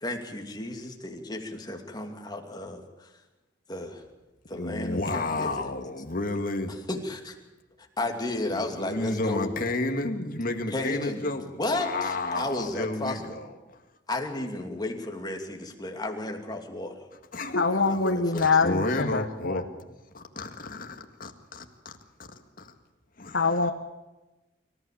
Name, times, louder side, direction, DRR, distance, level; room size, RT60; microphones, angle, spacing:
voice 1, 0.0-3.1 3.7-4.0 4.5-5.8 6.9-7.3 7.8-9.5 10.7-11.2 11.5-13.2 14.1-17.1 17.8-18.8, left 2 dB, 20° left, 3 dB, 2.7 m, -33 dB
voice 2, 4.5-6.7 8.5-13.8 17.3-19.6 20.1-20.5 23.2-23.5, left 2 dB, 50° left, 5 dB, 1.9 m, -31 dB
voice 3, 17.6-19.6 23.3-23.7, left 4 dB, 80° left, 4 dB, 1.4 m, -24 dB
25.5 x 14.5 x 8.6 m, 1.1 s
head